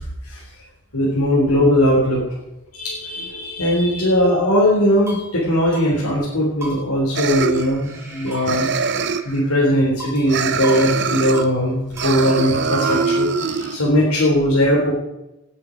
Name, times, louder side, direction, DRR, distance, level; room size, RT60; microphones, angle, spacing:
voice 1, 0.9-2.2 2.7-8.7 9.2-14.9, equal, 75° left, -5 dB, 3.6 m, -19 dB
sound 1, 4.7-5.3 5.7-5.9 6.1-6.2 6.6-7.6 7.8-9.6 10.0-10.3 10.6-10.9 11.1-11.5 12.0-13.2, right 1 dB, 15° right, 4.4 m, -36 dB
sound 2, 7.2-8.2 8.5-9.4 10.3-11.5 11.9-13.8, right 5 dB, 50° right, 0.8 m, -23 dB
18.5 x 8.7 x 5.2 m, 0.95 s
head